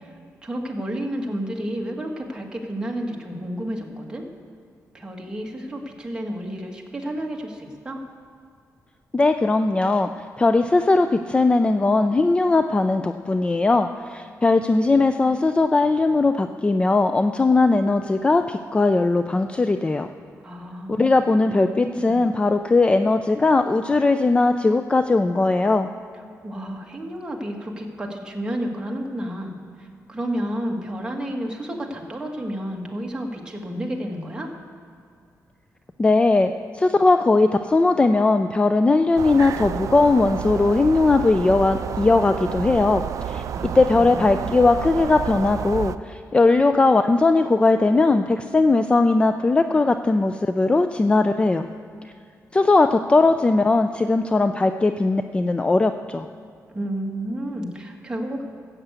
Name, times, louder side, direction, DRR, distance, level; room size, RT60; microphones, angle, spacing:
voice 1, 0.4-4.2 4.9-8.0 20.4-21.1 21.4-22.2 26.4-29.5 29.8-34.5 43.5-44.6 56.7-58.4, right 1 dB, 15° right, 0 dB, 1.8 m, -31 dB
voice 2, 9.1-20.1 20.9-25.9 36.0-43.4 43.7-51.7 52.5-56.3, left 3 dB, 20° left, 9 dB, 0.4 m, -19 dB
sound 1, 39.2-46.0, right 9 dB, 65° right, 0.4 m, -30 dB
13.0 x 8.0 x 8.1 m, 2.3 s
cardioid pair, 120°, 6 cm